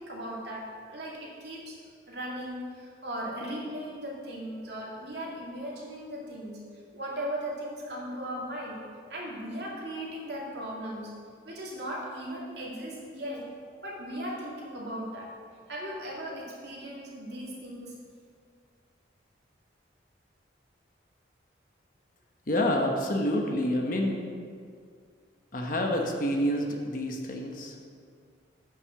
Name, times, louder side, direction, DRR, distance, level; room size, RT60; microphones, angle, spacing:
voice 1, 0.0-1.8 2.1-6.6 6.9-8.8 9.1-11.1 11.4-13.4 13.8-15.3 15.7-17.9, equal, 65° right, -4 dB, 2.5 m, -37 dB
voice 2, 22.5-24.2 25.5-27.9, left 1 dB, 45° left, 1 dB, 1.1 m, -28 dB
8.8 x 6.2 x 6.6 m, 2.1 s
head